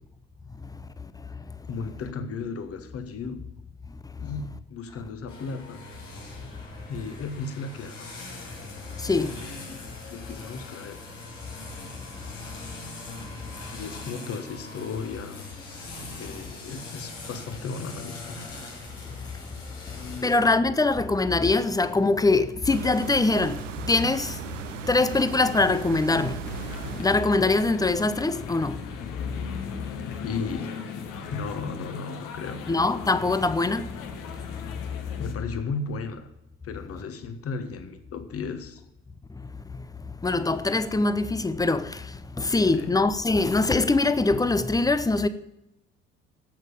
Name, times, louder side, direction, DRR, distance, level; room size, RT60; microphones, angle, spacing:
voice 1, 1.7-3.4 4.2-5.8 6.9-8.1 9.1-11.0 13.7-15.4 16.2-18.4 19.9-20.4 30.2-30.7 31.3-32.6 34.6-34.8 35.2-36.3 36.6-38.8 42.7-42.9, left 4 dB, 35° left, 1.4 m, -35 dB
sound 1, 5.3-20.4, left 2 dB, 75° left, 3.0 m, -41 dB
voice 2, 9.0-9.4 20.2-24.4 24.9-26.4 27.0-28.8 32.7-33.9 40.2-42.0 42.4-45.3, left 3 dB, 10° left, 0.7 m, -23 dB
sound 2, 22.7-27.4, right 6 dB, 75° right, 0.9 m, -37 dB
sound 3, 26.4-35.3, left 6 dB, 55° left, 1.5 m, -39 dB
8.8 x 8.3 x 8.7 m
figure-of-eight pair, 55°, 38 cm